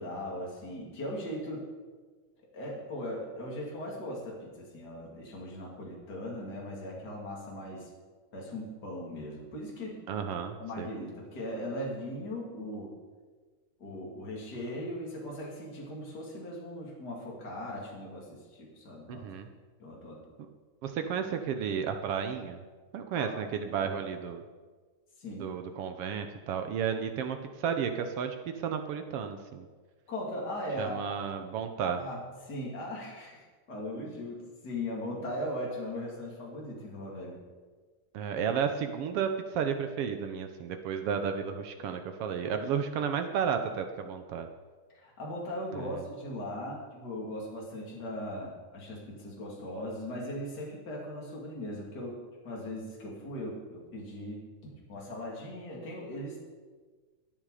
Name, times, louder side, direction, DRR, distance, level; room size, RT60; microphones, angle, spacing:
voice 1, 0.0-1.7 2.5-7.9 8.3-10.0 10.6-12.9 13.8-19.2 19.8-20.2 23.2-24.0 25.2-25.6 30.1-31.4 32.0-37.4 44.9-56.4, left 1 dB, 30° left, -2 dB, 3.1 m, -39 dB
voice 2, 10.1-10.9 19.1-19.5 20.8-22.6 22.9-24.4 25.4-29.7 30.8-32.0 38.1-44.5 45.7-46.0, right 7 dB, 80° right, 7 dB, 1.3 m, -33 dB
22.0 x 7.5 x 4.9 m, 1.4 s
omnidirectional pair, 3.5 m